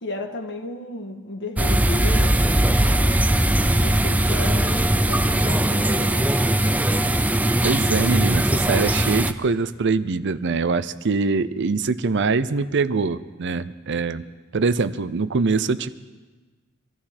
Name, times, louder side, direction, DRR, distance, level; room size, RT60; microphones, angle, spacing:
voice 1, 0.0-3.2 3.8-6.3, left 2 dB, 60° left, 5 dB, 1.6 m, -34 dB
sound 1, 1.6-9.3, right 1 dB, 5° right, 0.5 m, -20 dB
voice 2, 7.6-14.2 14.5-15.9, right 4 dB, 60° right, 14 dB, 0.6 m, -23 dB
25.0 x 13.5 x 4.3 m, 1.3 s
head